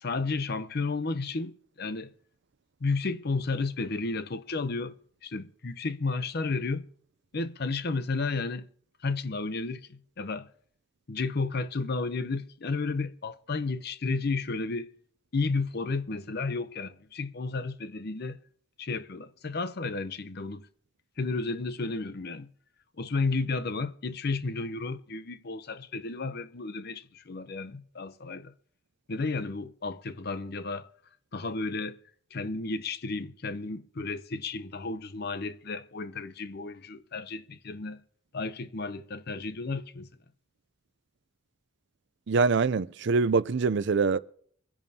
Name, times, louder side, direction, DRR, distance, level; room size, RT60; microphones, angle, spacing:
voice 1, 0.0-2.1 2.8-5.0 5.2-6.9 7.3-8.7 9.0-10.5 11.1-14.9 15.3-18.4 18.8-20.7 21.2-22.5 23.0-28.5 29.1-30.9 31.3-32.0 32.3-38.0 38.3-40.1, left 3 dB, 50° left, 0.7 m, -32 dB
voice 2, 42.3-44.2, right 4 dB, 60° right, 0.5 m, -24 dB
24.5 x 10.5 x 2.8 m
head